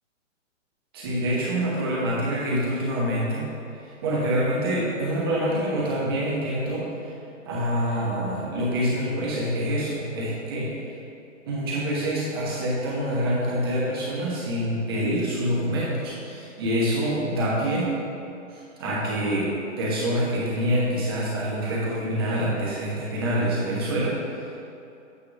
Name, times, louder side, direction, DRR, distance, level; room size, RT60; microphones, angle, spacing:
voice 1, 0.9-3.5 3.8-6.9 7.4-10.9 11.5-17.9 18.5-19.5 19.8-24.2, equal, 20° right, -6 dB, 1.0 m, -26 dB
8.7 x 7.4 x 3.3 m, 2.7 s
hypercardioid pair, 175°, 39 cm